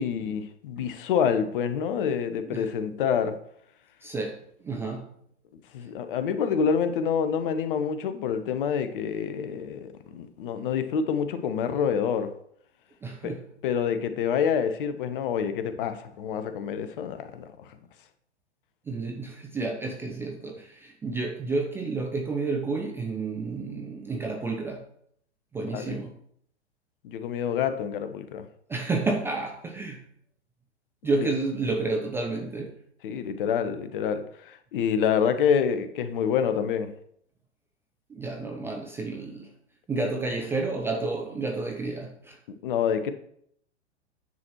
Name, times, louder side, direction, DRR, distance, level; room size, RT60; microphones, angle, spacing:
voice 1, 0.0-3.4 5.7-12.3 13.2-13.3 13.6-17.5 25.6-26.0 27.0-28.4 31.2-31.3 33.0-36.9 42.6-43.1, left 7 dB, 50° left, 10 dB, 0.9 m, -27 dB
voice 2, 4.0-4.4 4.6-5.1 13.0-13.4 18.9-24.8 25.5-26.1 28.7-30.0 31.0-32.7 38.1-39.5 39.9-42.4, right 3 dB, 5° right, 2 dB, 0.4 m, -30 dB
9.6 x 6.0 x 3.0 m, 0.68 s
figure-of-eight pair, 100°, 34 cm